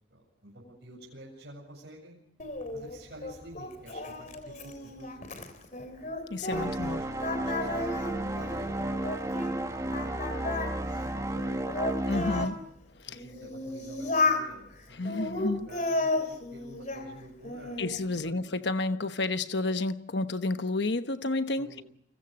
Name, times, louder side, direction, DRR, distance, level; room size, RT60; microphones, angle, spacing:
voice 1, 0.1-2.2 2.7-5.4 6.0-6.1 6.7-7.1 7.4-12.1 13.0-17.9 18.1-18.4 21.6-21.8, right 1 dB, 60° right, 7.6 m, -50 dB
Singing, 2.4-6.9 7.2-9.6 9.9-12.5 13.1-14.5 15.0-17.1 17.4-18.0, left 2 dB, 40° left, 3.3 m, -33 dB
voice 2, 6.3-7.1 12.1-12.7 13.0-13.2 14.9-15.7 17.8-21.8, left 2 dB, 65° left, 1.1 m, -31 dB
sound 1, 6.5-12.5, right 1 dB, 15° right, 1.6 m, -33 dB
30.0 x 24.5 x 5.2 m
head